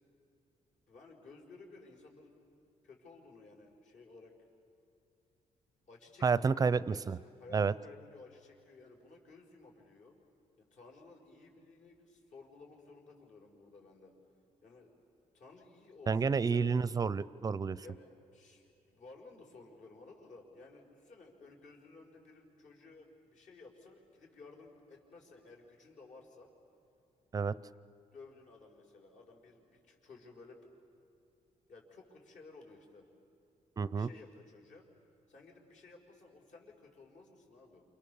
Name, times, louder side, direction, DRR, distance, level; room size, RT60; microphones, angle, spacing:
voice 1, 0.9-2.3 2.8-4.3 5.9-10.2 10.6-14.1 14.6-14.9 15.3-16.8 17.8-26.5 27.5-27.6 28.1-30.6 31.7-33.1 33.9-34.8 35.3-37.8, left 3 dB, 65° left, 0 dB, 5.4 m, -56 dB
voice 2, 6.2-7.2 7.5-7.7 16.1-17.8 27.3-27.5 33.8-34.1, right 5 dB, 25° right, 18 dB, 0.5 m, -30 dB
29.0 x 28.5 x 7.1 m, 2.7 s
cardioid pair, 155°, 14 cm